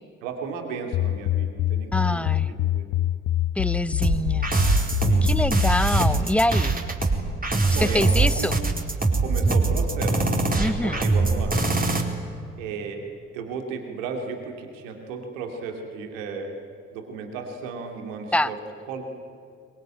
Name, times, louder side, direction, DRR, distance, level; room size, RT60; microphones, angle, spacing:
voice 1, 0.2-2.9 5.1-5.3 7.7-8.5 9.2-11.6 12.6-13.0 13.3-16.5 16.9-18.6 18.9-19.0, right 5 dB, 75° right, 4 dB, 2.8 m, -34 dB
sound 1, 0.9-6.2, left 14 dB, 55° left, 0.9 m, -25 dB
voice 2, 1.9-2.5 3.6-4.5 5.2-6.8 7.8-8.6 10.6-11.0 18.3-18.5, left 1 dB, 5° left, 15 dB, 1.1 m, -25 dB
sound 2, 4.0-12.0, right 3 dB, 20° right, 4.4 m, -22 dB
26.5 x 22.5 x 9.0 m, 2.2 s
figure-of-eight pair, 40°, 39 cm